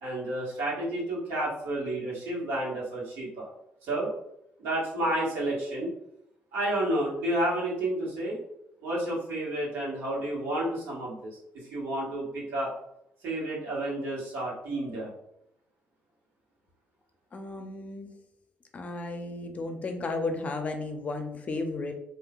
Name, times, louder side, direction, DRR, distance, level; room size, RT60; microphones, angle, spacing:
voice 1, 0.0-3.5 3.8-4.1 4.6-5.9 6.5-8.4 8.8-12.7 13.2-15.1, right 1 dB, 80° right, -5 dB, 1.4 m, -31 dB
voice 2, 17.3-18.1 18.7-21.9, left 3 dB, 35° left, 5 dB, 0.5 m, -34 dB
3.5 x 2.6 x 2.3 m, 0.79 s
cardioid pair, 100°, 4 cm